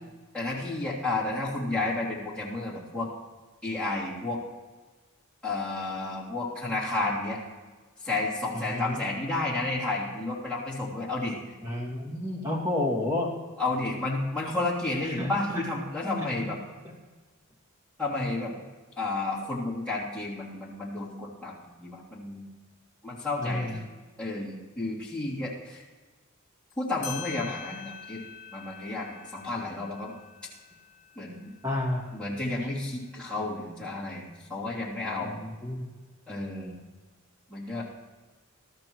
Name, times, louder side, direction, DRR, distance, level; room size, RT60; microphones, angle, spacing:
voice 1, 0.3-3.1 3.6-4.4 5.4-7.4 8.0-11.4 13.6-16.6 18.0-18.5 19.0-22.4 23.0-23.8 24.2-25.8 26.8-28.2 28.5-30.1 31.1-31.5 32.1-35.3 36.3-36.8 37.5-37.8, left 2 dB, 5° left, -8 dB, 3.1 m, -31 dB
voice 2, 8.5-9.0 11.6-13.3 15.2-15.6 16.0-16.5 16.8-16.9 23.4-23.8 31.6-32.0 35.2-35.8, left 1 dB, 15° right, -4 dB, 2.3 m, -31 dB
sound 1, 26.7-26.8 27.0-32.1, left 9 dB, 40° left, 4.8 m, -45 dB
21.5 x 13.0 x 3.1 m, 1.3 s
head